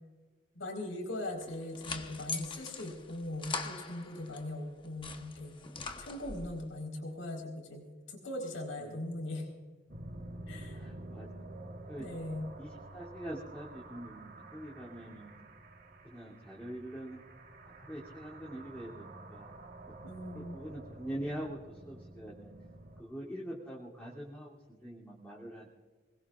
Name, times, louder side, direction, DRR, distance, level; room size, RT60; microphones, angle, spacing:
voice 1, 0.5-5.6 6.0-9.5 10.5-10.9 12.0-12.5 20.0-20.6, left 1 dB, 80° left, 1 dB, 4.5 m, -40 dB
sound 1, 1.4-4.4 4.8-6.6, left 4 dB, 25° left, 1.0 m, -42 dB
sound 2, 9.9-23.0, right 2 dB, 45° right, 1.5 m, -49 dB
voice 2, 10.8-11.5 11.9-12.1 12.6-15.3 16.0-17.2 17.7-19.5 19.9-20.0 20.3-21.6 21.8-22.5 23.0-24.5 24.8-25.7, right 1 dB, 10° left, -7 dB, 2.9 m, -44 dB
25.0 x 21.0 x 2.5 m, 1.4 s
head